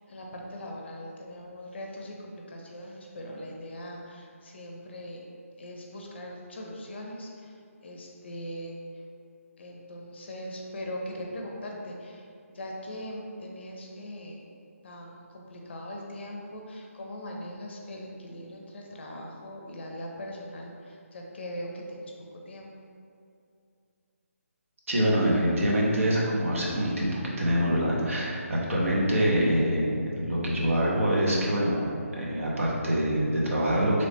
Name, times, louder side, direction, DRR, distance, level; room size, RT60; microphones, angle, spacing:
voice 1, 0.1-2.1 2.5-5.2 5.6-7.3 7.8-8.7 9.6-12.2 12.5-14.4 14.8-22.1 22.5-22.7, equal, 50° left, -1 dB, 0.5 m, -40 dB
voice 2, 24.9-27.1 27.4-29.9 30.2-34.1, equal, 65° right, -4 dB, 0.8 m, -25 dB
3.2 x 2.0 x 4.1 m, 2.4 s
figure-of-eight pair, 155°, 8 cm